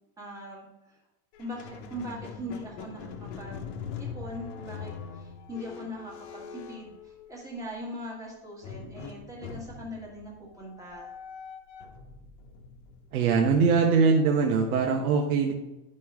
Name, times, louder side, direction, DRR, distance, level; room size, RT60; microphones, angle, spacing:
voice 1, 0.2-0.9 1.4-3.6 4.0-11.1, equal, 5° right, -3 dB, 1.6 m, -41 dB
Squeak, 1.3-7.7 8.6-13.8, left 6 dB, 45° left, 1.1 m, -42 dB
voice 2, 13.1-15.5, right 5 dB, 70° right, 2 dB, 1.2 m, -22 dB
11.0 x 5.4 x 3.5 m, 0.99 s
supercardioid pair, 170°, 45 cm